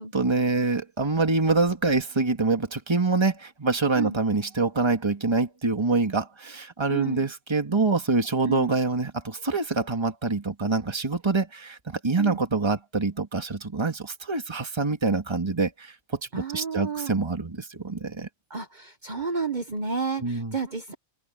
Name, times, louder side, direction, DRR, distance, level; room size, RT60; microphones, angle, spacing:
voice 1, 0.0-16.0 16.3-18.3 20.2-20.6, right 3 dB, 20° right, 1.9 m, -25 dB
voice 2, 6.9-7.3 8.4-8.8 12.2-12.4 16.3-17.1 18.5-20.9, right 5 dB, 35° right, 1.1 m, -31 dB
open air
omnidirectional pair, 1.4 m